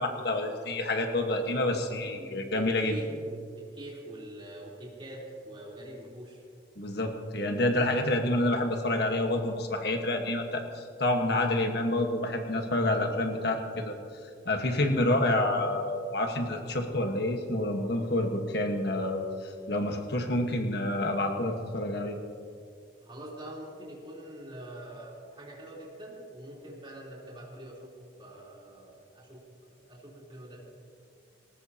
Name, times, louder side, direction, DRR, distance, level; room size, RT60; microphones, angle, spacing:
voice 1, 0.0-2.9 6.8-13.9 14.4-22.2, left 1 dB, 60° left, 3 dB, 1.4 m, -28 dB
voice 2, 2.2-6.4 23.0-27.9 28.2-29.4 29.7-30.6, right 1 dB, 25° right, -5 dB, 3.6 m, -44 dB
20.0 x 19.0 x 2.9 m, 2.3 s
head